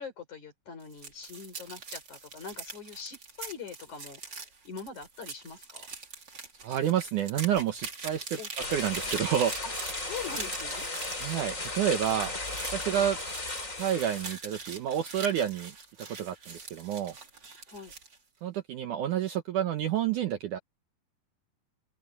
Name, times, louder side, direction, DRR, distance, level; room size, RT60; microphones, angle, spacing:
voice 1, 0.0-5.9 8.4-8.5 10.0-10.9 12.8-13.1 17.7-17.9, left 6 dB, 50° left, 6.6 m, -43 dB
sound 1, 0.8-18.2, right 4 dB, 30° right, 3.2 m, -43 dB
voice 2, 6.6-8.4 8.7-9.5 11.2-12.3 12.7-13.2 13.8-15.7 16.1-17.1 18.4-20.6, right 10 dB, 70° right, 2.1 m, -29 dB
sound 2, 8.6-14.3, left 2 dB, 20° left, 4.4 m, -35 dB
open air
omnidirectional pair, 4.4 m